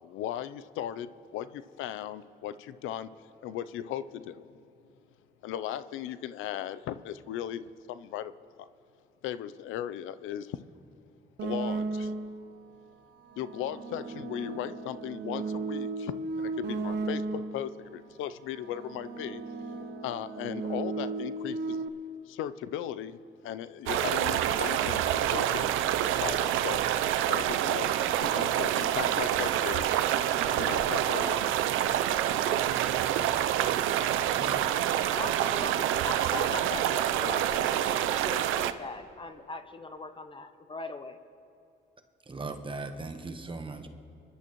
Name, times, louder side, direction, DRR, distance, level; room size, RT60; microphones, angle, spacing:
voice 1, 0.0-3.1 3.4-4.6 5.4-8.3 8.6-8.7 9.2-10.6 11.4-12.1 13.4-19.4 20.0-21.8 22.3-23.2 23.4-26.8 27.3-30.0 30.6-31.5, left 11 dB, 90° left, 14 dB, 0.5 m, -37 dB
sound 1, 11.4-12.5 13.2-17.7 18.5-21.9, right 3 dB, 60° right, 0.9 m, -35 dB
sound 2, 23.9-38.7, right 11 dB, 90° right, 0.5 m, -27 dB
voice 2, 34.3-34.8 42.3-43.9, right 3 dB, 25° right, 7 dB, 1.1 m, -39 dB
voice 3, 35.2-41.2, left 3 dB, 25° left, 9 dB, 0.7 m, -40 dB
26.5 x 11.5 x 3.0 m, 2.8 s
cardioid pair, 90°, 20 cm